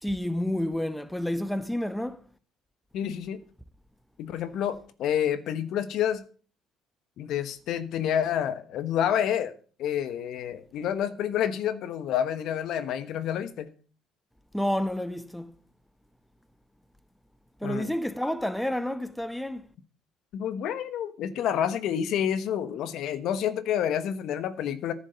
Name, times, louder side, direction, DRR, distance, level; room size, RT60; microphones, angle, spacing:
voice 1, 0.0-2.2 14.5-15.5 17.6-19.7, left 1 dB, 5° left, 1.0 m, -29 dB
voice 2, 2.9-3.4 4.2-6.2 7.2-9.5 9.8-13.7 17.6-17.9 20.3-24.9, left 9 dB, 70° left, 1.1 m, -28 dB
10.5 x 7.3 x 6.8 m
cardioid pair, 90°, 0 cm